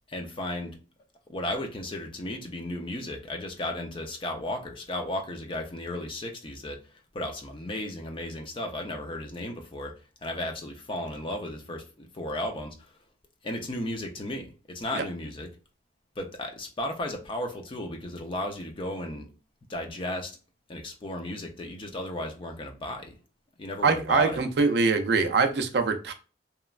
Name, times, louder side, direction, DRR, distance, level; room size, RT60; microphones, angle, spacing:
voice 1, 0.1-0.8 1.3-6.8 7.1-9.9 10.2-13.0 13.4-15.5 16.2-19.3 19.7-20.4 20.7-23.1 23.6-24.4, left 1 dB, 30° left, 0.5 m, -34 dB
voice 2, 23.8-26.1, right 4 dB, 65° right, 0.4 m, -23 dB
2.9 x 2.2 x 2.3 m
head